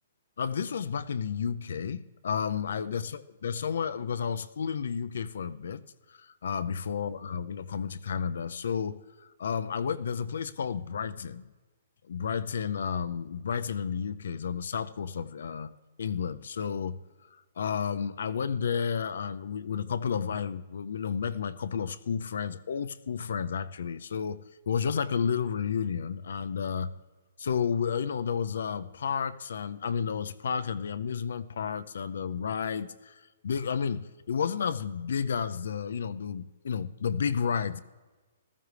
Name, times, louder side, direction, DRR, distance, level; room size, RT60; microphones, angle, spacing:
voice 1, 0.4-5.8 6.1-11.5 12.1-15.7 16.0-17.0 17.3-26.9 27.4-37.8, left 6 dB, 75° left, 13 dB, 0.5 m, -32 dB
15.0 x 13.0 x 3.3 m, 1.3 s
hypercardioid pair, 165°, 0 cm